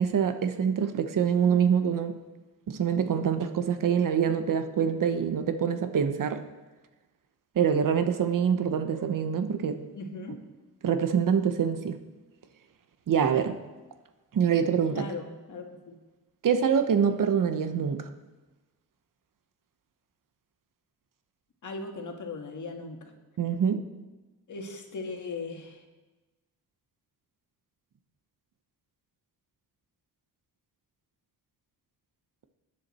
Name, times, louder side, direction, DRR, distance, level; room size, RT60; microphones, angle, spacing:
voice 1, 0.0-2.1 2.7-6.4 7.5-9.8 10.8-12.0 13.1-13.6 14.3-15.1 16.4-18.1 23.4-23.9, right 7 dB, 55° right, 8 dB, 1.0 m, -25 dB
voice 2, 9.9-10.4 14.9-16.0 21.6-23.1 24.5-25.8, left 3 dB, 50° left, 3 dB, 1.7 m, -38 dB
20.5 x 9.8 x 4.3 m, 1.2 s
wide cardioid pair, 165°, 38 cm